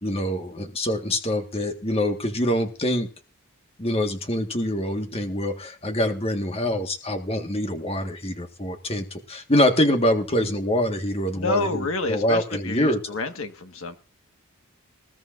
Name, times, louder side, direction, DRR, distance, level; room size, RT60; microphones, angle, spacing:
voice 1, 0.0-3.1 3.8-13.0, left 1 dB, 25° left, 1.7 m, -25 dB
voice 2, 11.3-14.0, left 2 dB, 65° left, 1.7 m, -28 dB
20.5 x 14.5 x 2.6 m
head